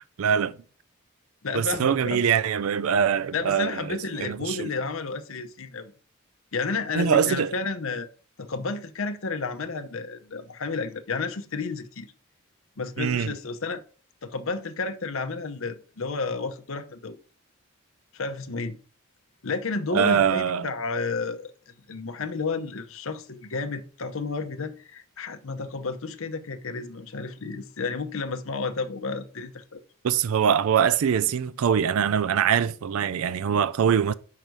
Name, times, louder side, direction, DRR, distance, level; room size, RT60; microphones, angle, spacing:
voice 1, 0.2-0.6 1.5-4.7 6.9-7.5 13.0-13.3 19.9-20.7 30.0-34.1, right 7 dB, 85° right, 0.4 m, -23 dB
voice 2, 1.4-2.3 3.3-5.9 6.5-8.1 8.4-12.1 12.8-13.8 14.2-17.2 18.1-18.8 19.4-29.8, left 4 dB, 75° left, 0.8 m, -31 dB
5.7 x 4.7 x 5.2 m
head